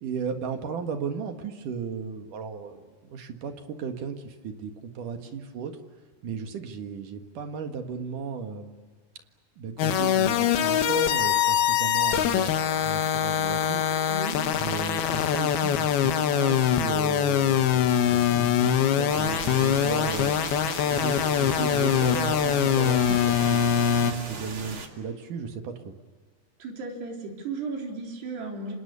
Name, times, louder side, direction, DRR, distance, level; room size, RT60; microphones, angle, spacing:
voice 1, 0.0-5.7 6.2-8.9 9.6-12.6 12.8-13.8 14.6-20.3 20.9-23.6 24.0-25.9, right 6 dB, 60° right, 5 dB, 2.9 m, -35 dB
sound 1, 9.8-24.1, left 9 dB, 70° left, 3.1 m, -23 dB
voice 2, 14.1-14.5 26.6-28.8, right 3 dB, 75° right, 1 dB, 5.9 m, -35 dB
sound 2, 19.1-24.9, right 4 dB, 35° right, 2.4 m, -38 dB
29.0 x 26.5 x 6.9 m, 1.4 s
omnidirectional pair, 4.8 m